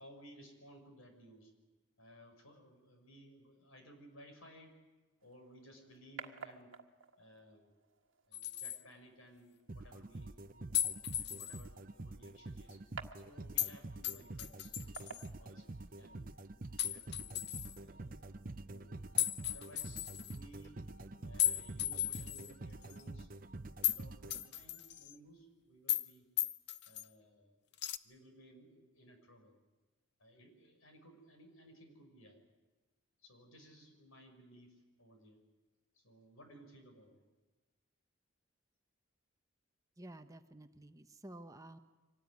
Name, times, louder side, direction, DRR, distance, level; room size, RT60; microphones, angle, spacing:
voice 1, 0.0-1.5 2.0-4.8 5.2-6.7 7.2-7.7 8.3-10.7 11.1-12.8 13.1-15.1 15.4-15.6 16.0-16.3 16.7-17.4 17.8-18.4 18.7-19.0 19.4-20.8 21.2-23.4 23.7-26.3 26.8-27.6 28.0-29.5 30.2-32.4 33.2-35.4 35.9-37.2, equal, 85° left, 5 dB, 5.7 m, -59 dB
sound 1, 5.2-16.2, right 5 dB, 65° right, 1.5 m, -55 dB
sound 2, 8.3-8.8 10.7-11.6 13.6-13.7 14.0-15.3 16.8-17.8 19.2-20.4 21.4-22.5 22.9-23.0 23.8-24.0 24.3-25.1 25.9-26.1 26.4-27.1 27.8-28.0, left 12 dB, 55° left, 0.7 m, -36 dB
sound 3, 9.7-24.9, right 2 dB, 40° right, 0.7 m, -48 dB
voice 2, 40.0-41.8, right 1 dB, 15° right, 8 dB, 0.9 m, -52 dB
24.5 x 18.5 x 9.5 m, 1.2 s
head